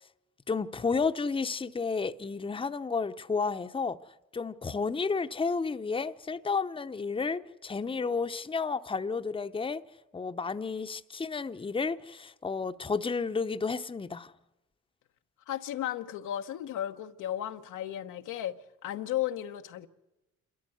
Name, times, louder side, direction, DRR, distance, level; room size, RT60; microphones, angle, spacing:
voice 1, 0.5-4.0 4.3-9.8 10.1-14.3, left 4 dB, 15° left, 0.8 m, -31 dB
voice 2, 15.5-18.6 18.8-19.9, left 12 dB, 90° left, 1.1 m, -34 dB
27.5 x 13.5 x 7.9 m
cardioid pair, 90°, 30 cm